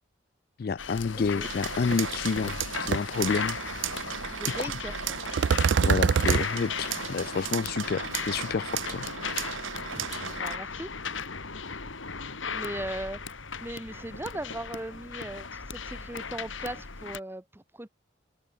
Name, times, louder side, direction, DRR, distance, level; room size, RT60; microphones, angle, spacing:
voice 1, 0.6-3.6 4.6-4.7 5.8-9.1, left 5 dB, 50° left, 0.4 m, -29 dB
sound 1, 0.8-17.2, left 5 dB, 80° left, 2.4 m, -37 dB
sound 2, 1.4-10.6, right 8 dB, 80° right, 1.5 m, -36 dB
sound 3, 1.9-2.0 2.4-2.6 2.9-3.0 5.4-6.4, right 6 dB, 60° right, 0.3 m, -23 dB
voice 2, 4.3-5.2 9.9-10.9 12.5-13.2 13.6-17.9, right 1 dB, 10° right, 0.8 m, -38 dB
head